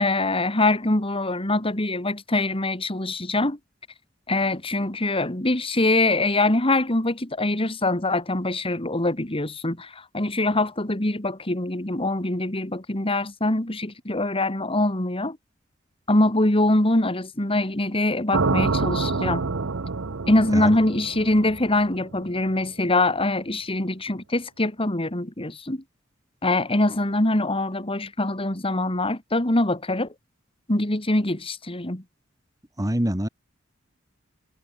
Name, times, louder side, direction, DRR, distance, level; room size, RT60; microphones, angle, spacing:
voice 1, 0.0-3.6 4.3-15.4 16.1-19.5 20.3-25.8 26.4-30.1 30.7-32.0, left 2 dB, 30° left, 2.6 m, -23 dB
sound 1, 18.3-22.4, right 4 dB, 75° right, 0.9 m, -27 dB
voice 2, 32.8-33.3, equal, 15° right, 2.1 m, -24 dB
head